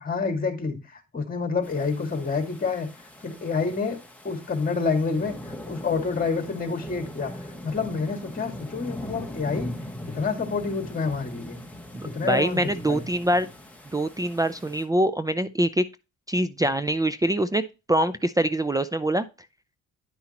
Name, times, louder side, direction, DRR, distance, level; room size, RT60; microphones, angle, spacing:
voice 1, 0.0-2.9 3.2-4.0 4.2-9.8 10.1-11.6 12.0-13.0, left 4 dB, 30° left, 2.0 m, -28 dB
sound 1, 1.6-14.8, left 1 dB, 5° left, 1.6 m, -41 dB
voice 2, 11.9-13.5 13.9-15.8 16.3-19.3, right 1 dB, 10° right, 0.4 m, -24 dB
9.7 x 5.6 x 2.9 m
cardioid pair, 90°, 30 cm